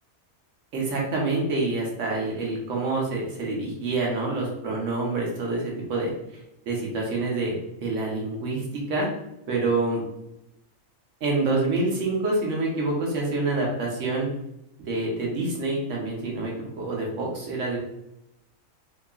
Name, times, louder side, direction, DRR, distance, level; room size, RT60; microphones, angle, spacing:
voice 1, 0.7-6.1 6.7-7.5 7.8-8.6 8.9-9.1 9.5-10.0 11.2-14.3 14.9-17.8, right 2 dB, 65° right, -2 dB, 1.1 m, -27 dB
2.9 x 2.3 x 2.2 m, 0.84 s
omnidirectional pair, 1.5 m